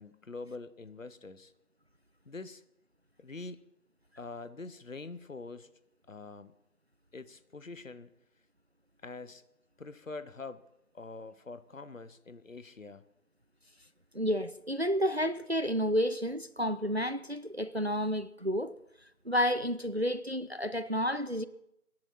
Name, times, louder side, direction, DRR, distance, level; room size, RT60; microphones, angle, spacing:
voice 1, 0.0-1.5 2.2-2.6 3.2-3.7 4.2-5.7 6.1-6.5 7.1-8.1 9.0-9.4 9.8-10.7 10.9-13.0, left 3 dB, 60° left, 1.0 m, -44 dB
voice 2, 14.1-18.7 19.2-21.5, equal, 45° right, 0.5 m, -30 dB
23.5 x 10.5 x 4.3 m
figure-of-eight pair, 165°, 45 cm